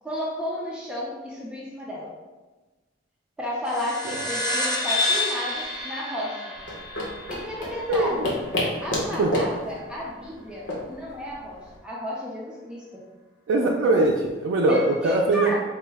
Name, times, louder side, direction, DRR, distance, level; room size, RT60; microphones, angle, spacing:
voice 1, 0.0-2.1 3.4-6.5 7.3-8.3 8.8-12.8 14.7-15.6, left 1 dB, 5° right, -5 dB, 0.4 m, -32 dB
sound 1, 3.7-8.6, left 2 dB, 20° left, 0.9 m, -29 dB
sound 2, 6.5-11.8, left 1 dB, 75° left, 0.9 m, -31 dB
voice 2, 7.9-8.3 9.2-9.3 13.5-15.6, right 2 dB, 85° right, -1 dB, 0.3 m, -22 dB
4.4 x 2.0 x 3.4 m, 1.2 s
head